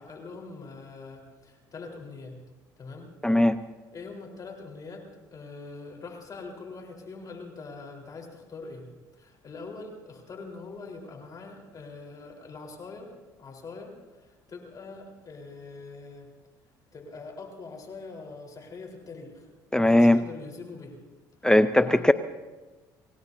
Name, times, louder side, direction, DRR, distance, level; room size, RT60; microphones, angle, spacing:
voice 1, 0.0-2.4 2.8-3.1 3.9-8.9 9.1-13.1 13.4-16.3 16.9-19.5 19.8-21.0 21.4-21.5 21.8-22.1, left 3 dB, 40° left, 1 dB, 4.3 m, -43 dB
voice 2, 3.2-3.6 19.7-20.2 21.4-22.1, left 1 dB, 5° left, 11 dB, 0.6 m, -19 dB
28.5 x 17.0 x 2.8 m, 1.2 s
supercardioid pair, 80°, 9 cm